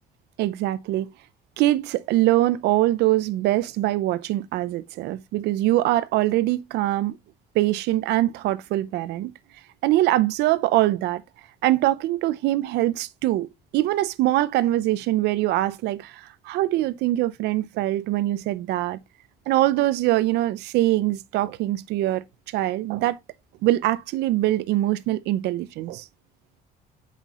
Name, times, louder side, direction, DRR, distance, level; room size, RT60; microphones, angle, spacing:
voice 1, 0.4-1.1 1.6-7.1 7.5-9.3 9.8-11.2 11.6-13.5 13.7-19.0 19.5-22.2 22.5-23.2 23.6-26.0, right 15 dB, 80° right, 0.6 m, -23 dB
8.2 x 5.8 x 3.0 m
cardioid pair, 110°, 17 cm